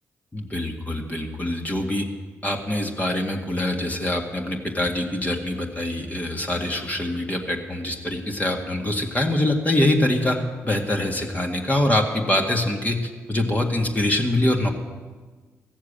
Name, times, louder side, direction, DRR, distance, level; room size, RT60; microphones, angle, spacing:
voice 1, 0.3-2.1 2.4-14.7, left 1 dB, 25° left, 2 dB, 1.9 m, -24 dB
15.0 x 7.3 x 8.8 m, 1.4 s
hypercardioid pair, 40°, 6 cm